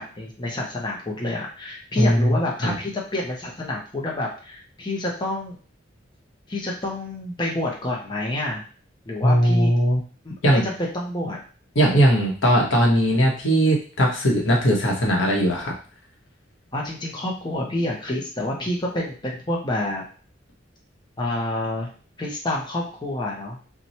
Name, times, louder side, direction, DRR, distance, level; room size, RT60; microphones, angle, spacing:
voice 1, 0.0-5.6 6.5-8.6 9.1-9.7 10.2-11.4 16.7-20.0 21.2-21.9 22.2-23.6, left 1 dB, 25° left, -2 dB, 0.6 m, -28 dB
voice 2, 2.0-2.7 9.2-10.0 10.4-10.6 11.7-15.8, equal, 75° left, -1 dB, 1.0 m, -19 dB
3.0 x 2.2 x 4.1 m, 0.39 s
head